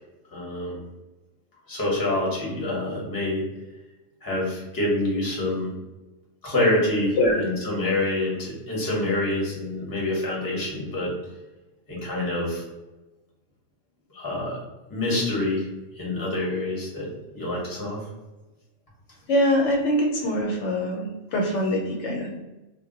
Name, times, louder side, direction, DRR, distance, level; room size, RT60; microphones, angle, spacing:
voice 1, 0.3-0.8 1.7-3.4 4.2-5.7 6.4-11.1 11.9-12.6 14.1-14.6 14.9-15.6 15.9-18.1, left 1 dB, 20° left, -4 dB, 0.7 m, -26 dB
voice 2, 19.3-22.3, left 1 dB, 75° left, -1 dB, 0.9 m, -23 dB
2.1 x 2.1 x 3.8 m, 1.1 s
omnidirectional pair, 1.3 m